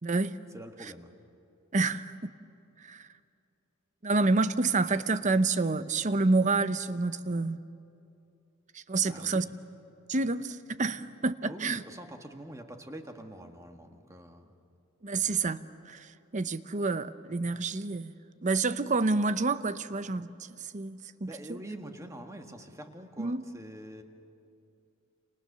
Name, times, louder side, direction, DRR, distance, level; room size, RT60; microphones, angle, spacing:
voice 1, 0.0-0.4 0.8-0.9 1.7-2.3 2.8-3.1 4.0-7.6 8.7-9.4 10.1-11.8 15.0-15.6 15.8-21.6 23.2-23.4, right 3 dB, 35° right, 13 dB, 0.8 m, -29 dB
voice 2, 0.5-1.1 9.0-9.5 11.4-14.5 21.3-24.0, right 1 dB, 15° right, 5 dB, 1.8 m, -45 dB
29.5 x 28.5 x 6.8 m, 2.6 s
head